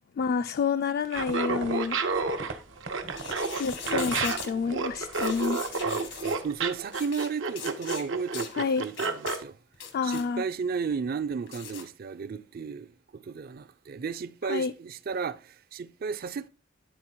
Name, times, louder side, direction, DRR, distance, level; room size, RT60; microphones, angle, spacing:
voice 1, 0.2-2.0 2.2-2.4 3.6-5.9 8.5-8.8 9.9-10.4 14.5-14.7, left 5 dB, 55° left, 0.3 m, -29 dB
Laughter, 1.0-9.4, right 4 dB, 85° right, 0.8 m, -30 dB
sound 1, 1.1-5.5 5.8-6.3, right 3 dB, 70° right, 1.2 m, -40 dB
sound 2, 3.1-4.5 5.1-6.4 6.9-7.3 7.6-8.0 8.3-8.5 8.9-9.4 9.7-10.3 11.5-11.8, left 7 dB, 85° left, 1.4 m, -39 dB
voice 2, 5.8-9.6 10.0-16.5, right 5 dB, 50° right, 0.4 m, -34 dB
10.0 x 4.1 x 4.4 m
head